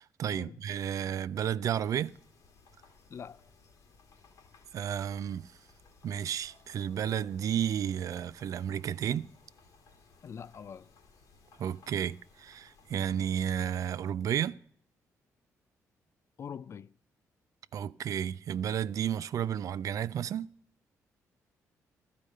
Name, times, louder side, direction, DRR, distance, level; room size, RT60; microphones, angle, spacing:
voice 1, 0.0-2.1 4.7-5.5 6.0-9.3 11.6-14.6 17.7-20.5, right 9 dB, 65° right, 0.3 m, -32 dB
sound 1, 1.7-13.8, left 4 dB, 75° left, 1.6 m, -61 dB
voice 2, 3.1-3.4 10.2-10.9 16.4-16.9, left 7 dB, 45° left, 0.3 m, -43 dB
12.0 x 5.0 x 6.4 m
cardioid pair, 80°, 6 cm